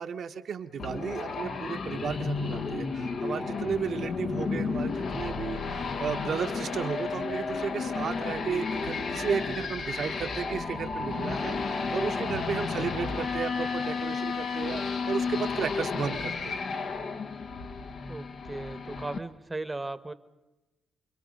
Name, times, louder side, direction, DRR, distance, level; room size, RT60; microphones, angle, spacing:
voice 1, 0.0-16.6, right 6 dB, 65° right, 6 dB, 1.3 m, -34 dB
sound 1, 0.8-19.2, left 4 dB, 60° left, 1.5 m, -32 dB
voice 2, 18.1-20.1, right 2 dB, 20° right, 13 dB, 1.2 m, -37 dB
29.5 x 22.0 x 5.4 m, 1.0 s
cardioid pair, 75°, 0 cm